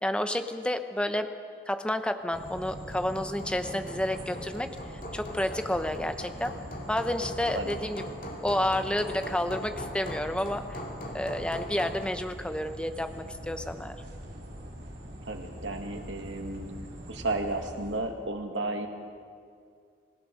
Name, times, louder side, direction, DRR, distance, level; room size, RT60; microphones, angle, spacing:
voice 1, 0.0-1.3 1.7-4.7 5.1-6.5 6.9-8.1 8.4-10.8 11.1-14.0, left 1 dB, 5° left, 8 dB, 0.9 m, -30 dB
sound 1, 2.3-18.0, right 1 dB, 70° right, 5.0 m, -43 dB
Hammer, 2.5-12.1, left 1 dB, 45° left, 2.4 m, -41 dB
voice 2, 15.2-16.7 17.1-18.9, right 2 dB, 90° right, 3 dB, 2.3 m, -33 dB
28.0 x 16.5 x 6.4 m, 2.2 s
head